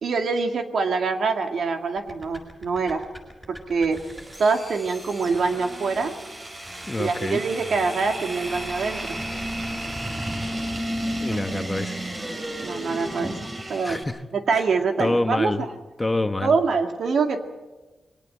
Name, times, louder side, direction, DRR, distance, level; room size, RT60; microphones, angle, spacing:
voice 1, 0.0-3.1 3.5-4.0 4.4-6.2 7.0-9.2 12.6-13.4 13.7-14.0 14.3-15.7 16.4-17.4, right 4 dB, 85° right, 5 dB, 2.1 m, -24 dB
sound 1, 2.0-11.7, equal, 10° right, 7.0 m, -42 dB
sound 2, 3.9-14.0, right 1 dB, 35° right, 4.4 m, -33 dB
voice 2, 6.9-7.4 11.2-12.0 13.8-14.2 15.0-15.6 16.0-16.5, left 2 dB, 20° left, 9 dB, 1.1 m, -26 dB
23.0 x 18.0 x 7.8 m, 1.2 s
wide cardioid pair, 105°, 0 cm